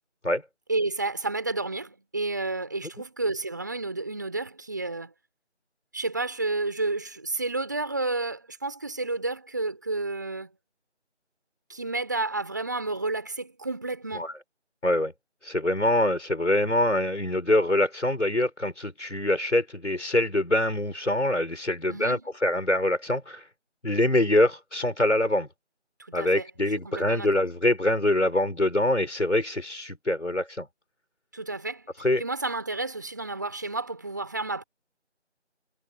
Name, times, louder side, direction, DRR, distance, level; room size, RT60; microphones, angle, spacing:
voice 1, 0.7-5.1 5.9-10.5 11.7-14.3 21.9-22.3 26.0-27.4 31.3-31.9 32.2-34.6, right 3 dB, 15° right, 6.0 m, -31 dB
voice 2, 15.4-23.4 23.8-25.5 26.1-30.7 32.0-32.2, left 1 dB, 80° left, 5.9 m, -24 dB
figure-of-eight pair, 175°, 36 cm